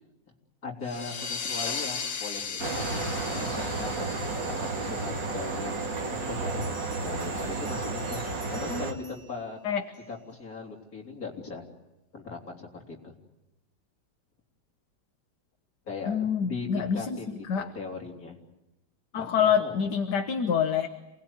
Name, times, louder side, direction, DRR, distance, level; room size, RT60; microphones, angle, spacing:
voice 1, 0.6-4.2 4.5-5.9 6.3-8.2 8.5-9.6 10.1-11.6 12.1-13.1 15.9-18.4 19.1-19.8, left 4 dB, 55° left, 0 dB, 4.1 m, -39 dB
sound 1, 0.8-6.2, left 5 dB, 90° left, 2.1 m, -37 dB
sound 2, 2.6-8.9, right 3 dB, 90° right, 2.9 m, -32 dB
Bell, 6.5-10.4, right 2 dB, 35° right, 7.1 m, -52 dB
voice 2, 8.7-9.1 9.6-9.8 16.1-17.2 17.5-17.7 19.1-20.9, left 7 dB, 70° left, 6 dB, 1.8 m, -26 dB
28.0 x 19.5 x 9.6 m, 0.96 s
omnidirectional pair, 1.9 m